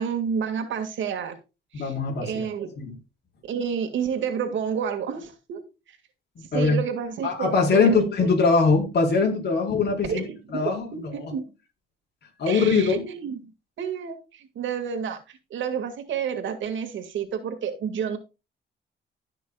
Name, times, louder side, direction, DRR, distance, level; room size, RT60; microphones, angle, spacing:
voice 1, 0.0-1.3 1.7-1.9 2.2-2.7 3.5-5.6 5.9-6.0 6.5-8.3 10.1-11.5 12.5-13.5 13.8-18.2, right 7 dB, 75° right, 2.1 m, -30 dB
voice 2, 1.7-2.5 2.8-3.0 6.4-6.8 7.2-11.3 12.4-13.0, left 4 dB, 55° left, 4.5 m, -22 dB
16.5 x 6.2 x 2.4 m
cardioid pair, 90°, 20 cm